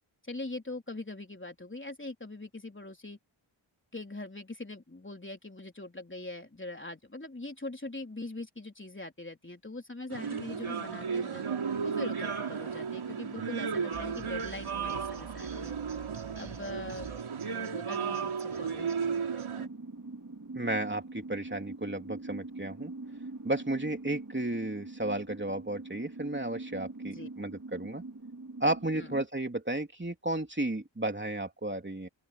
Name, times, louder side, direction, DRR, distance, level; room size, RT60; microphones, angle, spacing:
voice 1, 0.2-3.2 3.9-11.4 11.8-15.7 16.3-17.1 17.5-18.3 18.6-19.5 27.1-27.3 29.0-29.2, left 2 dB, 25° left, 3.7 m, -42 dB
sound 1, 10.1-19.7, right 6 dB, 85° right, 3.8 m, -34 dB
sound 2, 13.9-19.5, right 5 dB, 65° right, 6.4 m, -49 dB
sound 3, 19.6-29.3, right 2 dB, 40° right, 3.6 m, -43 dB
voice 2, 20.5-22.9 23.4-28.0 28.6-32.1, right 1 dB, 25° right, 3.4 m, -33 dB
open air
cardioid pair, 50°, 48 cm